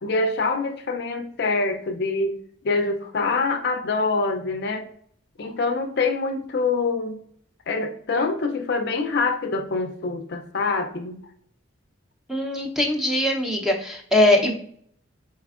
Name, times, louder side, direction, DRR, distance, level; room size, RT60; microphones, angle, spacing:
voice 1, 0.0-2.4 2.6-4.9 5.4-7.2 7.7-11.2, left 3 dB, 50° left, 5 dB, 0.4 m, -25 dB
voice 2, 12.3-14.5, left 1 dB, ahead, 1 dB, 0.5 m, -21 dB
4.3 x 4.1 x 2.4 m, 0.62 s
head